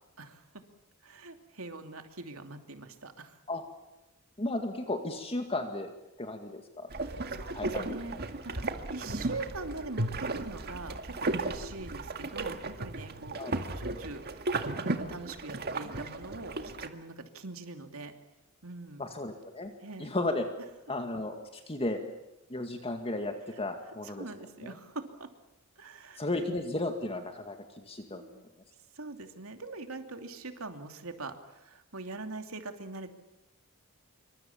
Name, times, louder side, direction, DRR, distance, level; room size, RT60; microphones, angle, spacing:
voice 1, 1.0-3.4 6.9-8.2 8.4-8.6 8.9-13.5 13.7-14.5 14.8-18.1 18.6-19.1 19.8-20.1 24.0-25.3 25.8-26.2 28.1-28.4 28.9-33.1, right 3 dB, 75° right, 6 dB, 2.9 m, -43 dB
voice 2, 4.4-5.9 6.2-6.9 7.5-7.8 8.1-8.2 13.4-13.5 19.0-19.7 20.0-20.5 20.9-22.0 22.5-24.3 24.6-24.7 26.2-28.2, left 2 dB, 25° left, 5 dB, 2.0 m, -34 dB
sound 1, 6.9-16.9, right 2 dB, 50° right, 1.9 m, -35 dB
26.5 x 24.5 x 7.2 m, 0.96 s
head